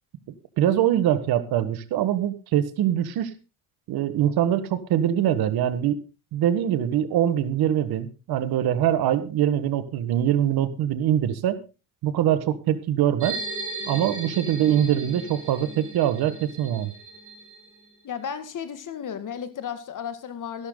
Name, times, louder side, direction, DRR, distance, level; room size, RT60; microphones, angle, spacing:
voice 1, 0.6-3.3 3.9-6.0 6.3-11.6 12.0-13.4 13.8-16.9, right 11 dB, 80° right, 12 dB, 1.5 m, -23 dB
sound 1, 13.2-17.9, right 3 dB, 35° right, 6.1 m, -37 dB
voice 2, 18.0-20.7, left 8 dB, 55° left, 10 dB, 2.1 m, -34 dB
13.5 x 11.5 x 3.9 m, 0.31 s
cardioid pair, 90°, 37 cm